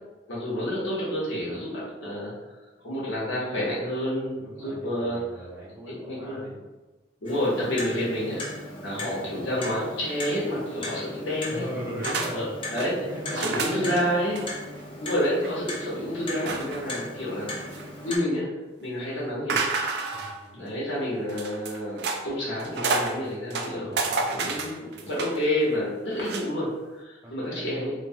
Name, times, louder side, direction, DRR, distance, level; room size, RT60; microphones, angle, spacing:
voice 1, 0.3-2.3 2.8-5.2 6.0-6.5 7.2-11.6 12.3-12.9 13.3-14.4 15.0-17.5 18.0-18.5 18.8-19.6 20.5-24.0 24.3-27.9, equal, 85° left, -7 dB, 0.9 m, -29 dB
voice 2, 4.4-6.6 9.1-9.4 11.5-12.5 13.0-14.1 20.1-20.6 23.5-25.1 27.2-27.9, equal, 10° right, -7 dB, 0.7 m, -39 dB
Clock, 7.3-18.2, left 1 dB, 30° left, 0.4 m, -38 dB
sound 1, 12.0-12.3 12.6-12.9 13.3-14.0 14.3-14.5 14.8-14.9 15.2-15.5 16.5-16.9 17.4-18.1 19.5-20.4 21.3-22.2 22.6-23.1 23.5-25.4 26.2-26.4, right 4 dB, 60° right, 0.3 m, -29 dB
3.0 x 2.1 x 2.5 m, 1.2 s
head